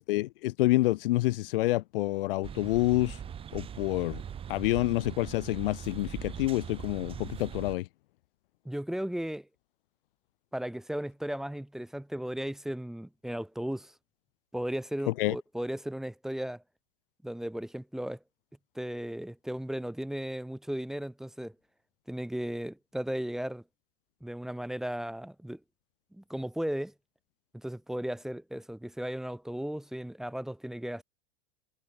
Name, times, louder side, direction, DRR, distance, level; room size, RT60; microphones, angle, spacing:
voice 1, 0.1-3.2 3.5-4.2 4.5-7.9 15.1-15.4, left 18 dB, 65° left, 0.6 m, -28 dB
sound 1, 2.4-7.8, right 8 dB, 20° right, 5.9 m, -41 dB
voice 2, 8.6-9.5 10.5-13.9 14.5-16.6 17.2-18.2 18.7-21.5 22.1-23.6 24.2-25.6 26.1-26.9 27.5-31.0, equal, ahead, 1.1 m, -35 dB
supercardioid pair, 165°, 29 cm